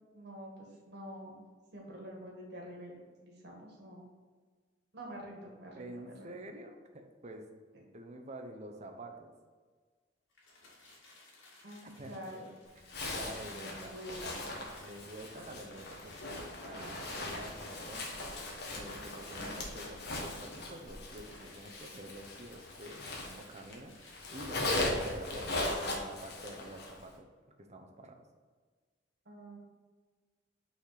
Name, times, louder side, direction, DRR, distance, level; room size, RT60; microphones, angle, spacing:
voice 1, 0.1-1.5 1.7-4.1 4.9-6.3 11.6-12.5 13.1-13.3 13.5-14.4 29.2-29.6, equal, 60° right, -1 dB, 1.8 m, -47 dB
voice 2, 5.7-7.4 7.9-9.3 11.8-12.1 12.8-13.9 14.8-18.1 18.7-27.2 27.6-28.2, right 1 dB, 35° right, 4 dB, 0.8 m, -48 dB
sound 1, 10.3-26.1, left 2 dB, 90° left, 2.0 m, -59 dB
Zipper (clothing), 12.9-23.8 24.1-27.0, left 2 dB, 60° left, 1.3 m, -39 dB
5.8 x 4.2 x 5.8 m, 1.5 s
head